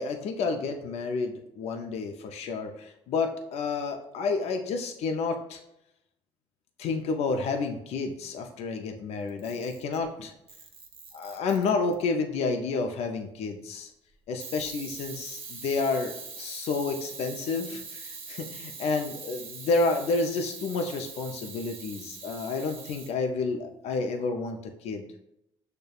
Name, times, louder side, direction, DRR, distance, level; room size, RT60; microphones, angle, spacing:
voice 1, 0.0-5.6 6.8-10.3 11.1-13.9 14.3-25.1, left 4 dB, 65° left, 4 dB, 0.4 m, -30 dB
Camera, 9.3-10.0 10.5-12.0 14.4-23.1, right 5 dB, 55° right, 0.8 m, -43 dB
6.4 x 2.2 x 2.3 m, 0.82 s
cardioid pair, 105°, 12 cm